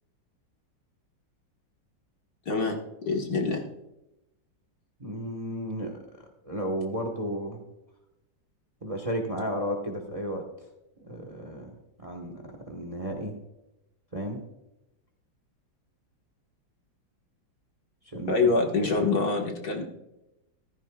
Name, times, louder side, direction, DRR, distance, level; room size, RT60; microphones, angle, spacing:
voice 1, 2.5-2.8 3.1-3.6 18.3-19.8, left 3 dB, 55° left, 1 dB, 2.1 m, -25 dB
voice 2, 5.0-7.6 8.8-10.4 11.0-13.3 14.1-14.4 18.0-18.3 18.9-19.1, equal, 20° right, 3 dB, 1.3 m, -33 dB
14.5 x 14.5 x 2.4 m, 0.92 s
omnidirectional pair, 2.0 m